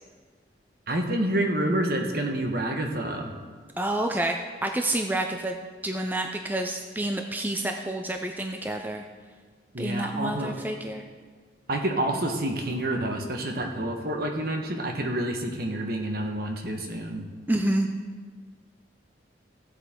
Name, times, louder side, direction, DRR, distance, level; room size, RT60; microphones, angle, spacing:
voice 1, 0.9-3.3 9.7-10.5 11.7-17.2, right 1 dB, 55° right, 3 dB, 1.3 m, -28 dB
voice 2, 3.8-5.6 5.8-9.0 9.8-11.0 17.5-17.9, right 1 dB, 10° right, 4 dB, 0.5 m, -28 dB
16.0 x 8.1 x 3.7 m, 1.5 s
head